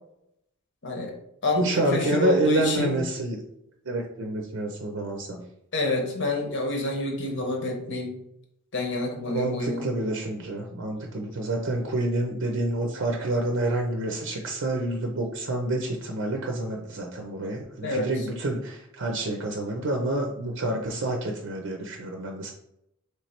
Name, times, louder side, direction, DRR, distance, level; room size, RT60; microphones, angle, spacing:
voice 1, 0.8-1.1 1.4-3.0 5.7-8.1 8.7-9.9 17.8-18.1, left 2 dB, 55° left, 2 dB, 1.0 m, -28 dB
voice 2, 1.6-3.4 3.9-5.4 9.3-22.5, right 2 dB, 60° right, 2 dB, 0.6 m, -28 dB
3.2 x 3.1 x 4.3 m, 0.80 s
head